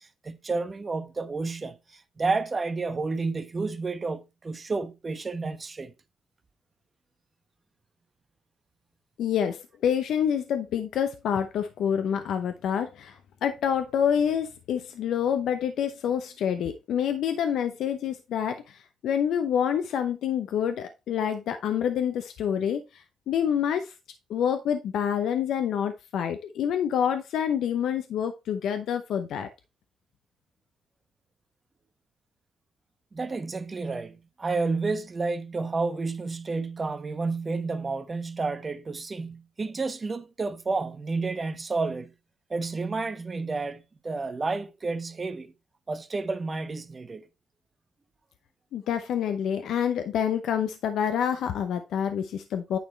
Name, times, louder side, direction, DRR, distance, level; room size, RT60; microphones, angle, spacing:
voice 1, 0.2-5.9 33.1-42.1 42.5-45.5 45.9-47.3, right 3 dB, 30° right, 1.0 m, -30 dB
voice 2, 9.2-23.9 24.3-29.5 48.7-52.8, left 8 dB, 75° left, 0.7 m, -27 dB
9.3 x 4.3 x 4.1 m
cardioid pair, 90°, 0 cm